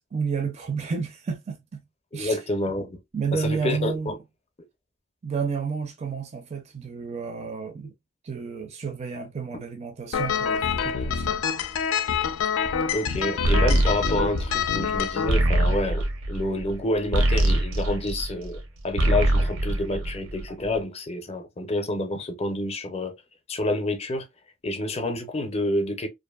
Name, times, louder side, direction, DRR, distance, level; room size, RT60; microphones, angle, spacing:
voice 1, 0.0-1.8 2.1-2.4 3.1-4.1 5.2-7.9 8.2-11.4, right 5 dB, 35° right, 0.4 m, -31 dB
voice 2, 2.1-3.0 3.3-4.2 12.9-23.1 23.5-24.3 24.6-26.1, left 1 dB, 30° left, 0.5 m, -28 dB
sound 1, 10.1-15.3, left 7 dB, 85° left, 0.4 m, -26 dB
sound 2, 13.4-18.6 18.9-20.6, right 1 dB, 80° right, 0.6 m, -23 dB
2.5 x 2.5 x 2.3 m
head